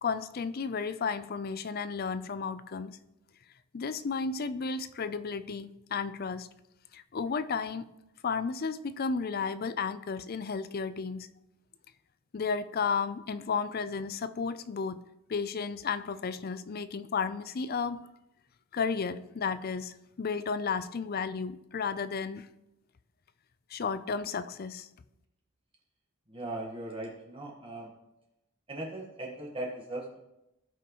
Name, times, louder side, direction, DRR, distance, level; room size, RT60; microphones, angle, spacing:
voice 1, 0.0-3.0 3.7-6.5 6.9-7.9 8.2-11.3 12.3-15.0 15.3-18.1 18.7-22.5 23.7-24.9, left 5 dB, 50° left, 13 dB, 0.5 m, -33 dB
voice 2, 26.3-27.9 28.7-30.2, right 1 dB, 25° right, -1 dB, 1.4 m, -39 dB
17.0 x 5.8 x 3.0 m, 0.89 s
head